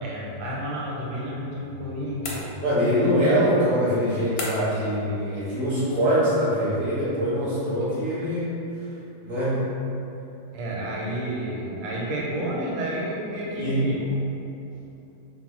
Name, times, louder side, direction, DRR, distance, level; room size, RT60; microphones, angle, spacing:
voice 1, 0.0-2.6 4.7-4.8 9.6-9.7 10.5-14.2, right 1 dB, 85° right, -4 dB, 1.3 m, -31 dB
sound 1, 2.2-3.0 4.4-4.9, left 2 dB, 75° left, 1.1 m, -34 dB
voice 2, 2.6-8.6 9.2-9.6 13.6-13.8, equal, 40° right, -11 dB, 0.4 m, -23 dB
2.9 x 2.1 x 3.0 m, 2.8 s
omnidirectional pair, 1.9 m